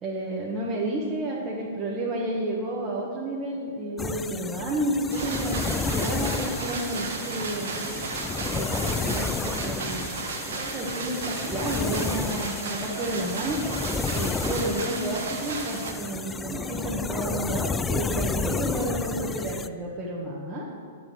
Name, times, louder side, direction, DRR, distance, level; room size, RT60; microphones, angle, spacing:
voice 1, 0.0-8.0 8.5-10.1 10.5-13.6 14.1-20.7, right 1 dB, 20° right, -5 dB, 1.6 m, -31 dB
sound 1, 4.0-19.7, left 4 dB, 15° left, 0.4 m, -31 dB
sound 2, 5.1-15.9, right 4 dB, 60° right, 1.5 m, -34 dB
11.5 x 7.1 x 6.4 m, 2.2 s
figure-of-eight pair, 105°, 0 cm